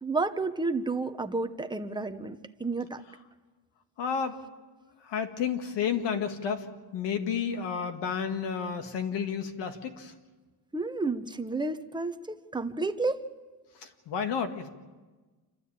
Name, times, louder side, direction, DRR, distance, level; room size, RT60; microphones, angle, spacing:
voice 1, 0.0-3.0 10.7-13.3, right 3 dB, 10° right, 8 dB, 0.8 m, -31 dB
voice 2, 4.0-4.4 5.0-6.7 6.9-10.1 13.8-14.7, left 7 dB, 80° left, 7 dB, 2.0 m, -31 dB
28.0 x 12.5 x 8.7 m, 1.3 s
cardioid pair, 135°, 42 cm